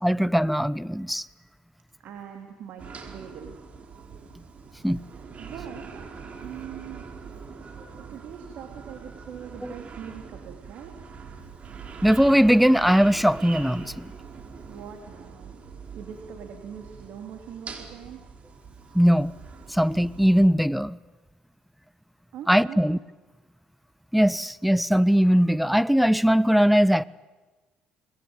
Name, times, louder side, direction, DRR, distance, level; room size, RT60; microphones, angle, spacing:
voice 1, 0.0-1.3 4.8-5.0 9.6-9.7 12.0-14.1 18.9-19.3 19.7-21.0 22.5-23.0 24.1-27.0, equal, ahead, 0.9 m, -20 dB
voice 2, 2.0-3.6 5.1-6.0 6.4-7.1 8.0-11.0 14.7-15.6 15.9-18.3 22.3-22.8, right 8 dB, 70° right, 3.3 m, -42 dB
sound 1, 2.8-20.5, right 5 dB, 45° right, 4.5 m, -43 dB
28.5 x 21.0 x 9.1 m
hypercardioid pair, 60°, 3 cm